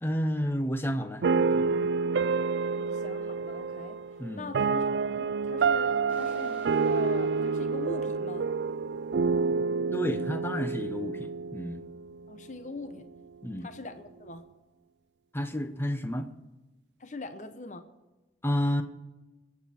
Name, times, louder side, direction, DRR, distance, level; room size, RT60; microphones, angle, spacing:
voice 1, 0.0-1.9 4.2-4.5 9.9-11.8 13.4-13.7 15.3-16.3 18.4-18.8, equal, 15° left, 0.8 m, -31 dB
sound 1, 1.2-12.3, right 4 dB, 80° right, 0.4 m, -28 dB
voice 2, 2.8-4.0 4.3-8.5 12.3-13.1 13.6-14.4 17.0-17.9, left 2 dB, 45° left, 0.8 m, -42 dB
sound 2, 6.1-11.6, equal, 10° right, 3.8 m, -51 dB
21.5 x 8.4 x 4.4 m
head